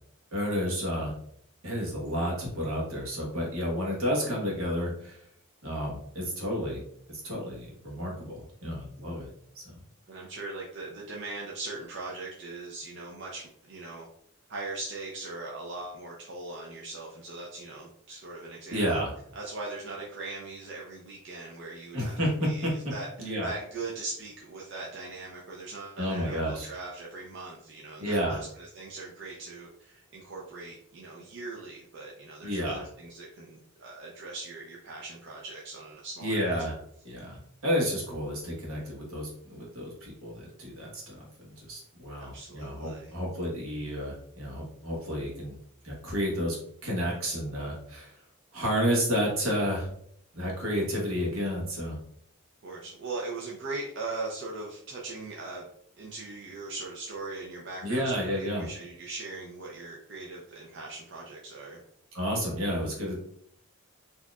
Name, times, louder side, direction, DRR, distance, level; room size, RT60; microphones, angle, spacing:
voice 1, 0.3-1.1 1.6-5.2 5.6-6.8 7.1-9.3 9.5-9.6 18.7-19.1 21.9-22.7 23.2-23.5 26.0-26.7 28.0-28.4 32.4-32.9 36.2-36.7 37.0-41.2 41.6-45.6 45.8-46.6 46.8-48.2 48.5-49.9 50.3-52.0 57.8-58.7 62.1-63.2, equal, 80° right, -2 dB, 1.4 m, -31 dB
voice 2, 10.1-14.1 14.5-19.0 19.4-22.1 22.4-36.6 42.2-43.2 52.6-55.7 56.0-61.8, right 3 dB, 55° right, -3 dB, 0.6 m, -40 dB
4.3 x 2.8 x 2.3 m, 0.67 s
head